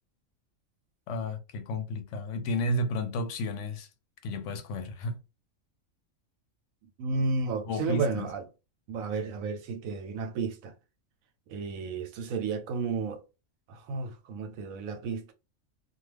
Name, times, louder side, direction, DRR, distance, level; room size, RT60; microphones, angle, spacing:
voice 1, 1.1-3.9 4.2-5.2 7.6-8.3, left 1 dB, 70° left, 0.9 m, -32 dB
voice 2, 7.0-8.4 8.9-10.7 11.5-13.2 13.7-15.3, right 4 dB, 85° right, 1.0 m, -32 dB
2.3 x 2.3 x 3.2 m
omnidirectional pair, 1.4 m